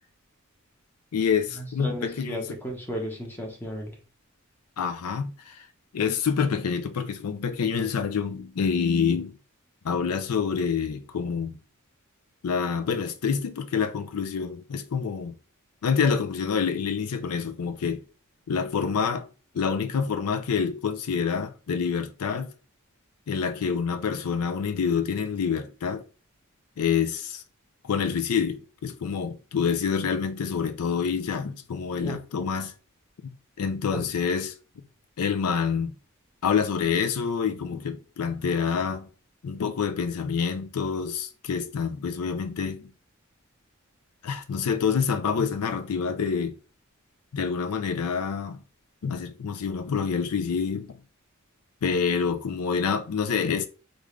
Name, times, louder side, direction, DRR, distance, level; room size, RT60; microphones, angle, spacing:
voice 1, 1.1-2.6 4.8-5.6 5.9-9.3 9.8-11.6 12.4-15.3 15.8-18.0 18.5-19.3 19.5-22.5 23.3-26.0 26.8-27.4 27.8-32.7 33.6-34.5 35.2-35.9 36.4-39.1 39.4-42.9 44.2-46.6 47.3-48.6 49.0-51.0 51.8-53.7, left 6 dB, 80° left, 0.4 m, -27 dB
voice 2, 1.8-3.9 32.0-32.1, equal, 10° left, 0.9 m, -34 dB
3.6 x 2.4 x 3.2 m
head